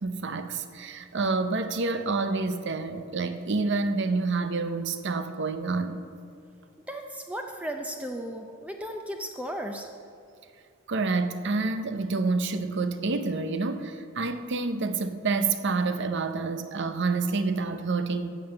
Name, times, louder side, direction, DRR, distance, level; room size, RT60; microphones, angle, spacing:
voice 1, 0.0-6.0 10.9-18.3, right 3 dB, 60° right, 0.8 m, -28 dB
voice 2, 6.9-9.9, equal, 5° right, 0.6 m, -35 dB
11.0 x 7.7 x 7.9 m
head